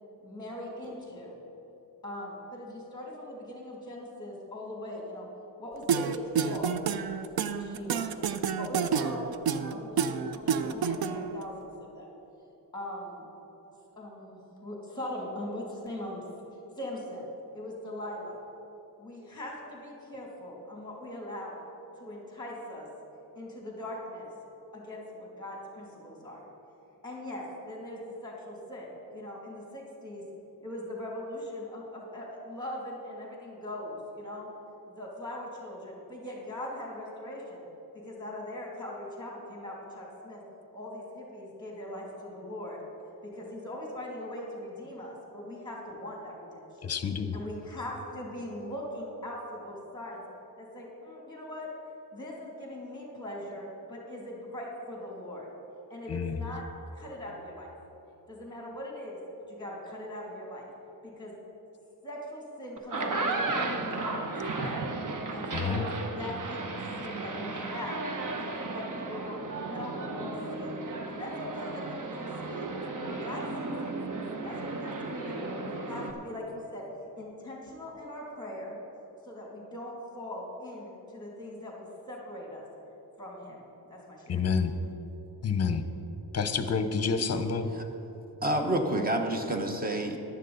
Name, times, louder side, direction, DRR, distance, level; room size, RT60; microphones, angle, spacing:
voice 1, 0.2-1.3 2.0-5.3 5.6-6.8 7.0-8.1 8.6-12.1 12.7-13.3 14.0-16.2 16.8-17.3 17.5-18.4 19.0-21.6 22.0-22.9 23.3-24.3 24.7-26.4 27.0-30.2 30.6-34.5 34.9-37.6 38.0-40.4 40.7-42.8 43.2-46.9 47.3-50.2 50.6-51.7 52.1-55.5 55.9-56.6 56.9-57.7 58.3-59.2 59.5-60.7 61.0-61.3 62.0-64.8 65.3-68.0 68.3-70.8 71.1-72.7 73.1-73.9 74.3-76.8 77.2-78.8 79.2-82.6 83.2-84.4, left 1 dB, 10° left, -3 dB, 2.6 m, -41 dB
sound 1, 5.9-11.4, right 7 dB, 65° right, 0.6 m, -29 dB
voice 2, 46.8-47.3 56.1-56.4 65.5-65.8 84.3-84.7 85.4-85.8 86.3-87.7, left 5 dB, 40° left, 9 dB, 0.8 m, -28 dB
sound 2, 62.8-76.1, right 3 dB, 50° right, 1.1 m, -34 dB
voice 3, 88.4-90.2, right 1 dB, 25° right, 4 dB, 1.0 m, -28 dB
14.5 x 11.0 x 4.0 m, 2.9 s
wide cardioid pair, 150°, 39 cm